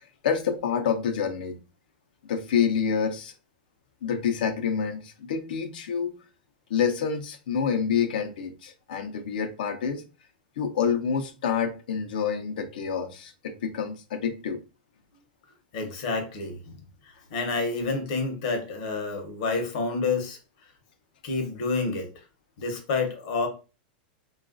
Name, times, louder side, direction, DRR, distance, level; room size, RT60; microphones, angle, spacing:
voice 1, 0.2-1.6 2.3-3.3 4.0-6.1 6.7-10.0 10.6-14.6, left 7 dB, 75° left, 0.6 m, -27 dB
voice 2, 15.7-16.8 17.0-20.4 21.2-22.1 22.6-23.5, left 3 dB, 55° left, 0.9 m, -29 dB
3.1 x 2.4 x 2.4 m
supercardioid pair, 165°, 5 cm